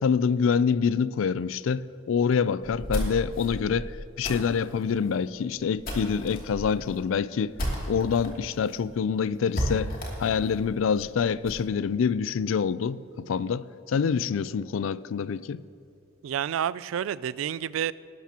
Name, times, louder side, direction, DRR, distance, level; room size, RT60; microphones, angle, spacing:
voice 1, 0.0-3.9 4.2-7.5 7.9-9.9 10.2-15.6, left 6 dB, 80° left, 0.4 m, -26 dB
sound 1, 2.6-8.3 8.7-8.8 9.0-9.1 9.5-11.7, equal, 50° left, 2.7 m, -34 dB
voice 2, 16.2-17.9, right 9 dB, 85° right, 0.3 m, -29 dB
19.0 x 12.0 x 2.9 m
head